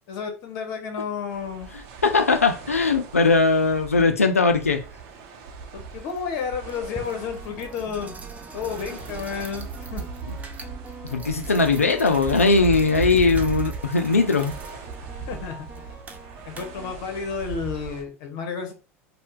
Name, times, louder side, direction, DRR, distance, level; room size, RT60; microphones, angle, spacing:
voice 1, 0.1-1.7 5.7-8.2 8.5-10.0 15.2-15.7 16.5-18.7, left 6 dB, 55° left, 0.9 m, -31 dB
sound 1, 1.3-18.0, right 5 dB, 55° right, 0.7 m, -37 dB
voice 2, 2.0-4.8 11.1-14.5, left 3 dB, 90° left, 0.3 m, -20 dB
sound 2, 5.3-5.4 6.1-16.9, right 3 dB, 20° right, 0.6 m, -43 dB
2.7 x 2.1 x 3.4 m
figure-of-eight pair, 75°, 8 cm